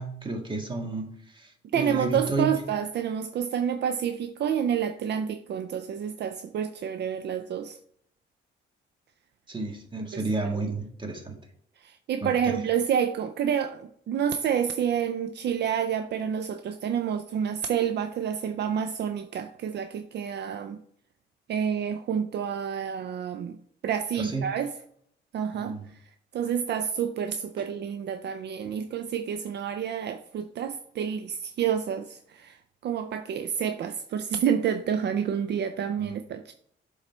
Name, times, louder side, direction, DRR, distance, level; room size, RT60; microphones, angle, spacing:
voice 1, 0.0-2.5 9.5-11.4 12.2-12.5 24.2-24.4 25.5-25.8 28.6-28.7 36.0-36.1, right 3 dB, 25° right, 1.6 m, -32 dB
voice 2, 1.7-7.8 10.1-10.2 10.6-10.7 11.8-20.8 21.5-23.6 23.8-24.7 25.3-25.7 26.3-36.5, right 8 dB, 60° right, 0.5 m, -29 dB
7.3 x 4.0 x 4.3 m
cardioid pair, 90°, 20 cm